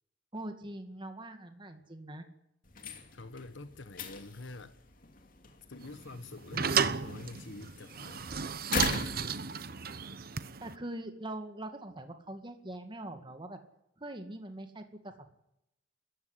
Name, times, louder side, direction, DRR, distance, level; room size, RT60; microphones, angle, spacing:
voice 1, 0.3-2.3 10.6-13.6 14.0-15.3, right 1 dB, 25° right, 2.0 m, -42 dB
sound 1, 2.6-10.1, left 4 dB, 50° left, 2.7 m, -41 dB
voice 2, 3.1-4.7 5.7-8.4, left 2 dB, 85° left, 1.2 m, -46 dB
sound 2, 5.8-10.8, right 6 dB, 55° right, 1.0 m, -33 dB
24.0 x 14.5 x 10.0 m
head